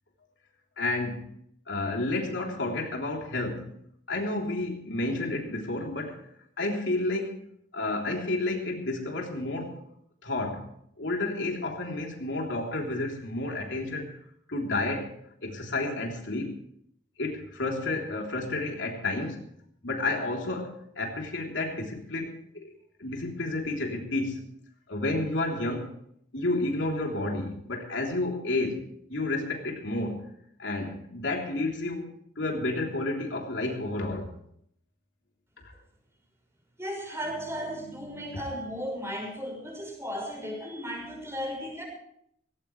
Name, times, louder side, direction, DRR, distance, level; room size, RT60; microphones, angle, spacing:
voice 1, 0.8-1.3 1.7-3.7 4.1-6.2 6.6-7.4 7.7-9.8 10.2-10.7 11.0-14.1 14.5-15.1 15.4-16.6 17.2-19.4 19.8-22.7 23.0-24.5 24.9-25.9 26.3-30.2 30.6-32.1 32.4-34.3 35.6-35.7 38.1-38.4, left 2 dB, 75° left, 1 dB, 3.5 m, -31 dB
voice 2, 36.8-41.8, equal, 15° right, 0 dB, 6.0 m, -35 dB
18.5 x 17.5 x 3.3 m, 0.68 s
head